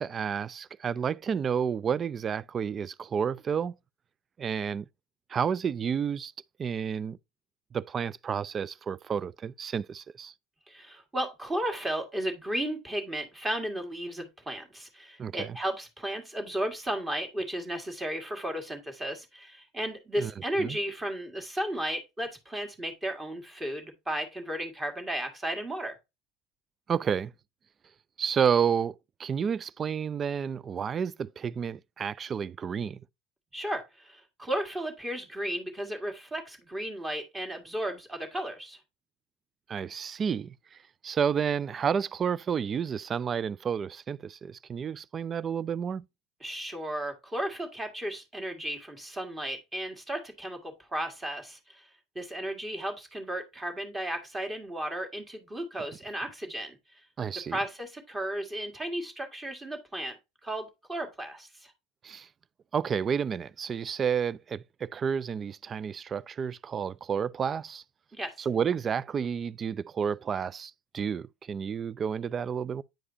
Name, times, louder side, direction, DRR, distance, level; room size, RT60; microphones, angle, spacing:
voice 1, 0.0-3.7 4.4-4.9 5.3-6.3 6.6-7.2 7.7-10.3 15.2-15.6 20.2-20.3 20.6-20.8 26.9-27.3 28.2-33.0 39.7-40.8 41.0-46.0 57.2-57.6 62.0-62.3 62.7-67.8 68.4-72.8, right 7 dB, 30° right, 0.3 m, -30 dB
voice 2, 10.7-26.0 33.5-38.8 46.4-51.9 52.2-57.0 57.5-60.1 60.4-61.7 68.1-68.5, right 1 dB, 15° right, 1.9 m, -34 dB
8.9 x 4.8 x 2.6 m
hypercardioid pair, 75°, 0 cm